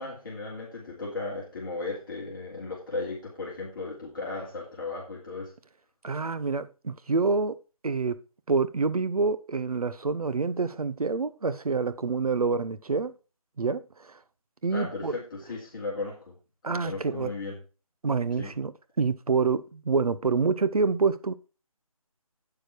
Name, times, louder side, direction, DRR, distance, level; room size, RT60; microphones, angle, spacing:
voice 1, 0.0-5.5 14.7-16.3 16.7-17.6 18.4-18.5, left 3 dB, 35° left, 3.0 m, -36 dB
voice 2, 6.0-7.6 7.8-8.2 8.5-13.1 13.6-14.2 14.6-15.1 16.6-17.3 18.0-18.7 19.0-21.3, right 4 dB, 80° right, 1.0 m, -27 dB
8.9 x 7.0 x 4.6 m
figure-of-eight pair, 175°, 19 cm